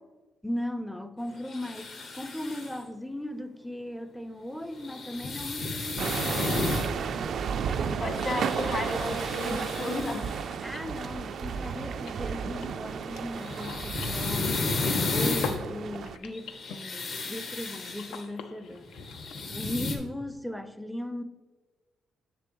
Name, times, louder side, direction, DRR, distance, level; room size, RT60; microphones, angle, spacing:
voice 1, 0.4-6.6 10.6-14.8 15.1-18.9 19.5-21.2, left 1 dB, ahead, 0.4 m, -37 dB
sound 1, 1.4-2.8 4.8-6.9 8.1-10.4 13.2-15.6 16.3-18.2 18.9-20.0, left 3 dB, 60° left, 1.3 m, -33 dB
sound 2, 6.0-16.2, right 6 dB, 60° right, 0.3 m, -33 dB
voice 2, 7.6-10.3, left 2 dB, 40° left, 1.2 m, -33 dB
sound 3, 10.4-15.0 15.4-19.7, left 5 dB, 85° left, 0.5 m, -44 dB
6.8 x 6.8 x 3.0 m
cardioid pair, 90°, 0 cm